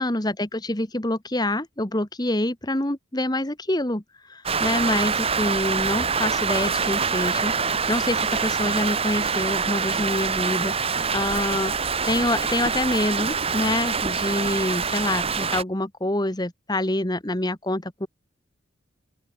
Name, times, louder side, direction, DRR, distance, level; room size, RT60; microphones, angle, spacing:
voice 1, 0.0-4.0 4.3-11.7 12.0-18.1, left 1 dB, 20° left, 1.6 m, -26 dB
Rain, 4.5-15.6, right 5 dB, 30° right, 1.7 m, -25 dB
open air
head